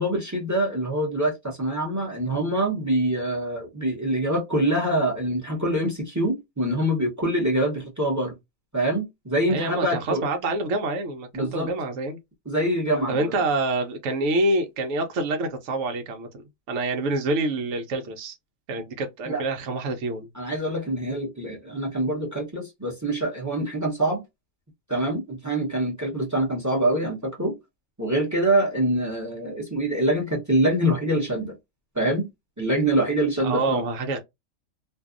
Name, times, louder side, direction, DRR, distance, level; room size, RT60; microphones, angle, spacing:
voice 1, 0.0-8.3 8.7-10.3 11.3-11.7 12.5-13.4 19.3-19.4 20.3-24.2 24.9-27.6 28.0-31.6 31.9-32.3 32.6-33.8, right 1 dB, 15° right, 0.7 m, -25 dB
voice 2, 9.5-12.2 13.1-18.4 18.7-20.3 33.4-34.2, right 2 dB, 65° right, 0.9 m, -27 dB
2.6 x 2.3 x 2.4 m
omnidirectional pair, 1.5 m